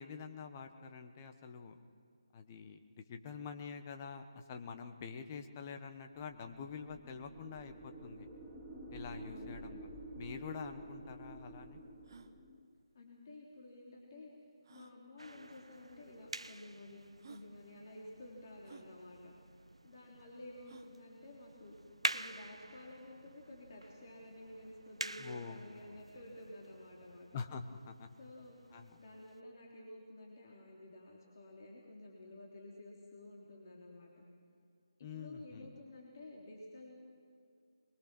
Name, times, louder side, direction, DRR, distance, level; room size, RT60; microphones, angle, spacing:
voice 1, 0.0-1.8 2.3-8.3 8.9-9.8 10.1-11.8 25.2-25.6 25.9-26.0 27.3-28.1 28.7-29.0 35.0-35.7, left 5 dB, 25° left, 6 dB, 1.2 m, -46 dB
sound 1, 6.5-12.6, right 1 dB, 5° right, 2.5 m, -50 dB
voice 2, 9.3-9.8 12.9-14.3 14.7-19.3 19.8-21.8 22.1-27.3 28.2-28.6 29.0-34.2 35.0-37.0, left 1 dB, 40° left, -3 dB, 3.4 m, -52 dB
sound 2, 10.7-10.8 11.4-11.5 12.0-12.3 13.7-13.8 14.6-15.0 16.0-16.1 16.8-16.9 17.2-17.5 18.6-18.9 20.6-21.0, right 5 dB, 45° right, 1.1 m, -56 dB
sound 3, 15.2-29.4, right 2 dB, 80° right, 0.7 m, -47 dB
22.5 x 22.5 x 6.1 m, 2.4 s
figure-of-eight pair, 155°, 3 cm